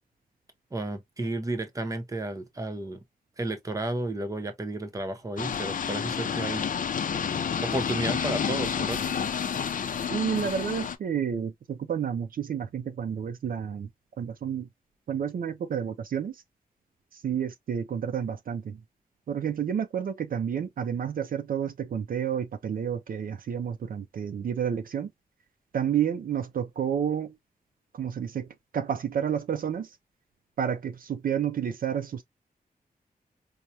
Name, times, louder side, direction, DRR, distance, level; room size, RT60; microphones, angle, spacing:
voice 1, 0.7-3.0 3.4-6.7 7.6-9.2, right 2 dB, 20° right, 0.7 m, -32 dB
sound 1, 5.4-11.0, left 7 dB, 60° left, 0.5 m, -30 dB
voice 2, 10.1-13.9 14.2-14.7 15.1-16.4 17.1-18.8 19.3-25.1 25.7-27.3 27.9-28.5 28.7-29.9 30.6-32.2, right 8 dB, 65° right, 0.4 m, -30 dB
4.6 x 2.1 x 2.7 m
wide cardioid pair, 165°, 16 cm